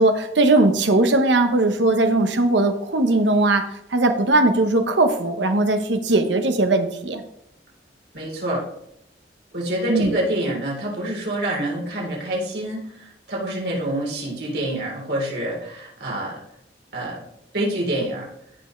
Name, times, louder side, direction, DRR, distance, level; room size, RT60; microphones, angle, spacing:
voice 1, 0.0-3.6 3.9-7.2 9.9-10.2, right 2 dB, 90° right, 6 dB, 1.1 m, -19 dB
voice 2, 8.1-8.6 9.5-12.8 13.3-16.4 16.9-17.2 17.5-18.3, right 1 dB, 65° right, -2 dB, 3.7 m, -26 dB
16.0 x 5.7 x 3.3 m, 0.76 s
head